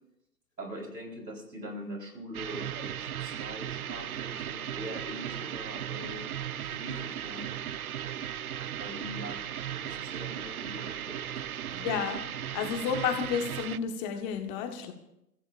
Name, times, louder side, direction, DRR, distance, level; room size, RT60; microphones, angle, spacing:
voice 1, 0.6-6.3 6.7-7.6 8.8-11.2 11.7-12.0, right 1 dB, 80° right, 2 dB, 4.2 m, -42 dB
sound 1, 2.3-13.8, right 10 dB, 65° right, 0.6 m, -37 dB
voice 2, 11.8-12.2 12.5-14.9, left 7 dB, 20° left, 5 dB, 1.3 m, -31 dB
28.5 x 15.0 x 2.5 m, 0.82 s
figure-of-eight pair, 140°, 48 cm